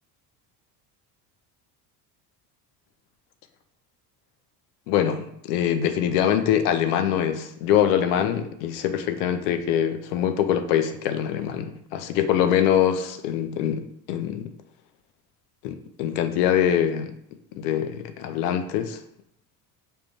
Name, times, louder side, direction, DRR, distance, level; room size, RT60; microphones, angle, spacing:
voice 1, 4.9-13.8 14.1-14.5 15.6-17.1 17.5-19.0, left 9 dB, 85° left, 8 dB, 0.6 m, -23 dB
5.3 x 2.2 x 2.5 m, 0.74 s
supercardioid pair, 90°, 45 cm